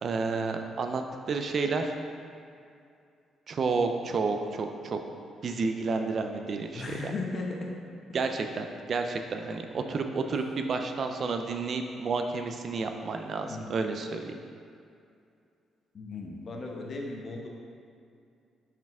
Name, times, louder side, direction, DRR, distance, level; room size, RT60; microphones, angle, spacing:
voice 1, 0.0-1.9 3.5-5.0 5.4-7.1 8.1-14.3, right 4 dB, 50° right, 5 dB, 0.5 m, -30 dB
voice 2, 6.7-7.7 13.5-13.8 15.9-17.5, left 3 dB, 45° left, -1 dB, 1.0 m, -36 dB
5.8 x 4.5 x 3.6 m, 2.4 s
cardioid pair, 90°, 0 cm